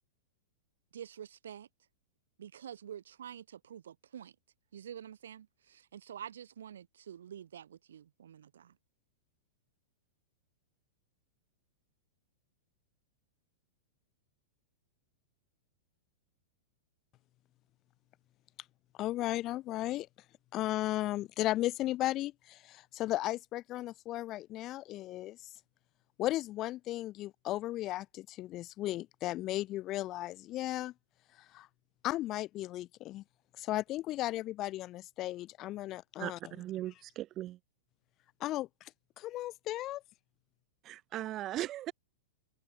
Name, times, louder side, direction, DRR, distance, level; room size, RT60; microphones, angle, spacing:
voice 1, 0.9-1.7 2.4-4.3 4.7-8.8, right 9 dB, 80° right, 3.2 m, -47 dB
voice 2, 19.0-20.1 20.5-25.4 26.2-30.9 31.4-31.7 32.0-33.2 33.6-36.4 38.4-38.9 39.2-40.0, left 15 dB, 35° left, 0.8 m, -35 dB
voice 3, 36.2-37.6 40.8-41.9, right 14 dB, 35° right, 1.1 m, -38 dB
hypercardioid pair, 115°, 0 cm